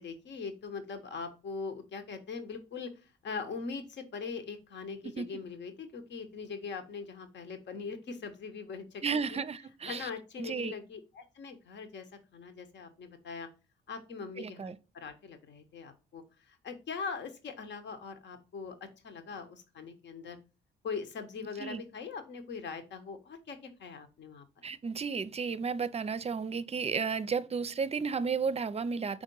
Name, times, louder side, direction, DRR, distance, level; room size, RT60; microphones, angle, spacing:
voice 1, 0.0-9.4 9.8-12.1 12.3-13.5 13.9-20.4 20.8-24.4, left 5 dB, 60° left, 1.1 m, -41 dB
voice 2, 9.0-10.1 10.4-10.7 14.4-14.8 21.6-21.8 24.6-29.2, right 5 dB, 30° right, 0.5 m, -33 dB
5.1 x 3.6 x 5.3 m
supercardioid pair, 55°, 20 cm